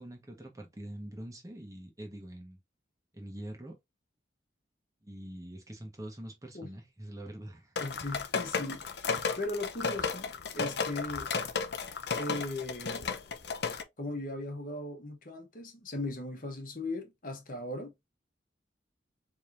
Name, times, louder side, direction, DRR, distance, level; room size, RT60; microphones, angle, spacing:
voice 1, 0.0-2.6 3.1-3.8 5.0-7.7, right 1 dB, 15° right, 1.0 m, -44 dB
sound 1, 7.8-13.8, left 5 dB, 60° left, 0.7 m, -33 dB
voice 2, 7.8-9.0 9.4-11.3 12.1-13.2 14.0-18.1, left 2 dB, 45° left, 1.2 m, -38 dB
4.3 x 3.4 x 2.6 m
head